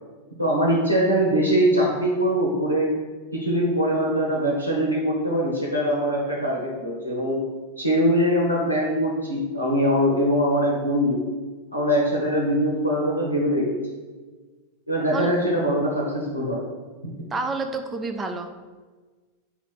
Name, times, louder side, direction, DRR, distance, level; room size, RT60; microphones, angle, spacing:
voice 1, 0.4-2.9 3.3-7.4 7.8-11.2 11.7-13.9 14.9-16.7 17.0-17.1, equal, 90° left, -3 dB, 0.7 m, -22 dB
voice 2, 17.3-18.5, right 3 dB, 15° right, 6 dB, 0.4 m, -28 dB
4.1 x 3.0 x 4.1 m, 1.4 s
figure-of-eight pair, 90°, 0 cm